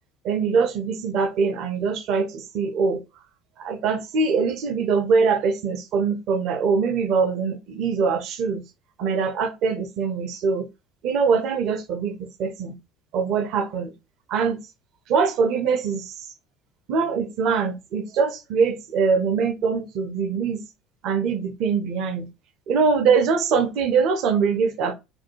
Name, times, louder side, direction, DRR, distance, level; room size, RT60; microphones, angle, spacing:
voice 1, 0.2-3.0 3.6-8.6 9.0-10.7 11.0-12.8 13.1-13.9 14.3-14.6 15.1-16.1 16.9-20.6 21.0-22.3 22.7-24.9, right 5 dB, 55° right, 0.5 m, -23 dB
2.6 x 2.2 x 2.8 m
figure-of-eight pair, 60°, 0 cm